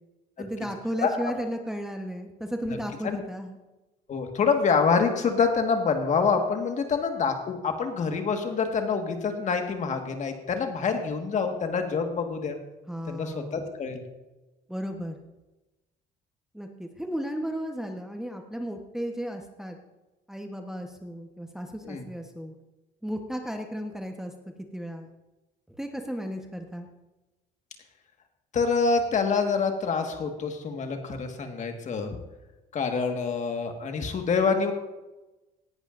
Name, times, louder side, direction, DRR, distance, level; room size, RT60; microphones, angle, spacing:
voice 1, 0.4-3.6 12.9-13.7 14.7-15.1 16.5-19.8 20.3-22.5 23.0-24.3 24.7-25.1 25.8-26.9, equal, 5° right, 3 dB, 1.1 m, -34 dB
voice 2, 4.1-12.6 13.1-14.0 21.8-22.1 28.5-32.1 32.7-34.7, left 5 dB, 45° left, 5 dB, 1.6 m, -26 dB
18.0 x 11.5 x 2.6 m, 1.1 s
cardioid pair, 110°, 17 cm